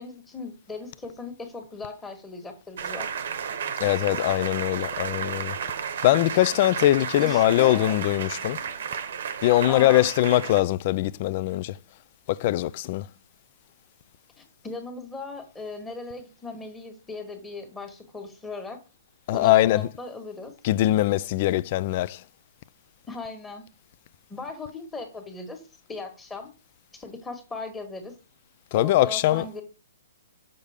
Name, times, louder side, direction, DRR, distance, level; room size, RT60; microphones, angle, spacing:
voice 1, 0.0-3.1 7.2-8.0 9.6-10.1 14.4-18.8 19.3-20.5 23.1-23.6 24.3-25.6 25.9-26.5 26.9-28.1 28.7-29.6, left 3 dB, 10° left, 1.4 m, -38 dB
sound 1, 2.8-10.6, right 7 dB, 65° right, 0.9 m, -33 dB
voice 2, 3.8-5.5 6.0-8.6 9.4-11.7 12.3-13.1 19.3-19.9 20.6-22.2 28.7-29.5, left 15 dB, 40° left, 0.3 m, -22 dB
6.6 x 5.3 x 3.5 m
hypercardioid pair, 145°, 0 cm